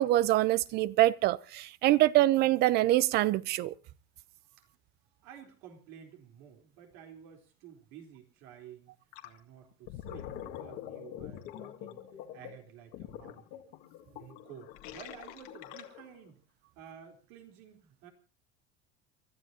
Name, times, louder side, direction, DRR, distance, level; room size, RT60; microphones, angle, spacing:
voice 1, 0.0-3.7, right 16 dB, 55° right, 0.7 m, -25 dB
voice 2, 5.2-9.0 9.2-12.0 12.3-13.6 14.1-16.4 16.8-18.1, right 9 dB, 75° right, 3.8 m, -52 dB
Gurgling, 9.1-9.4 9.7-16.2, left 11 dB, 75° left, 2.1 m, -45 dB
29.0 x 13.0 x 2.8 m
cardioid pair, 135°, 20 cm